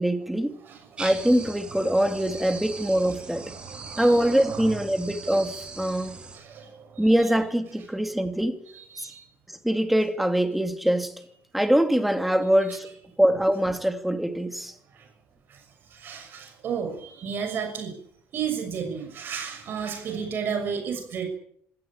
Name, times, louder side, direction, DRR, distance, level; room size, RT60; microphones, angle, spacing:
voice 1, 0.0-0.6 1.0-3.4 4.0-6.2 7.0-8.6 9.0-9.1 9.5-11.1 11.5-12.9 13.2-14.7, right 1 dB, 5° right, 2.6 m, -23 dB
voice 2, 0.6-1.1 2.0-2.1 3.3-4.8 6.0-7.3 8.7-9.3 14.9-15.1 15.5-18.0 18.3-21.3, right 7 dB, 45° right, 6.4 m, -34 dB
sound 1, 1.0-6.4, right 4 dB, 20° right, 5.6 m, -40 dB
26.0 x 17.0 x 8.9 m
cardioid pair, 150°, 5 cm